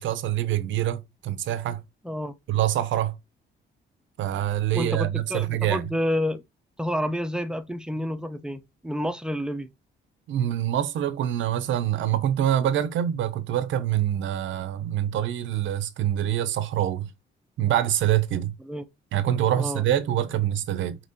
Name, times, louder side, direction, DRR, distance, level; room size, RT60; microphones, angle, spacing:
voice 1, 0.0-1.8 2.5-3.2 4.2-5.9 10.3-17.1 17.6-18.5 19.1-21.0, right 11 dB, 75° right, 0.7 m, -25 dB
voice 2, 4.7-6.4 6.8-9.7 18.7-18.8 19.5-19.8, equal, 5° right, 0.6 m, -29 dB
5.2 x 3.0 x 2.7 m
cardioid pair, 90°, 20 cm